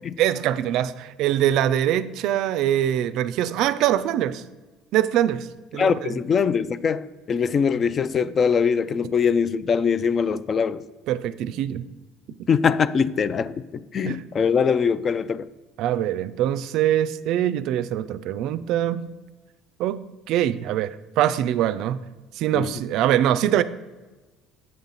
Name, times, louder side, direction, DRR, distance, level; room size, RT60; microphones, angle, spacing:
voice 1, 0.2-4.4 4.9-6.1 11.1-11.9 14.1-14.2 15.8-19.1 19.8-22.0 22.3-23.6, right 11 dB, 70° right, 0.3 m, -23 dB
voice 2, 5.8-10.8 12.5-15.5 22.5-22.7, left 6 dB, 40° left, 0.3 m, -22 dB
7.6 x 5.6 x 3.9 m
supercardioid pair, 100°, 0 cm